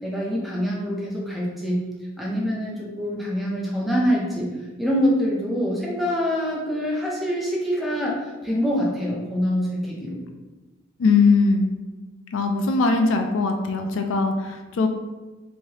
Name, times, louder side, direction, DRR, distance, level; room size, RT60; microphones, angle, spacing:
voice 1, 0.0-1.8 2.2-4.5 4.8-8.1 8.4-10.2, equal, ahead, -4 dB, 0.5 m, -25 dB
voice 2, 11.0-11.7 12.3-14.9, left 4 dB, 70° left, 5 dB, 0.3 m, -20 dB
3.2 x 2.6 x 2.8 m, 1.2 s
head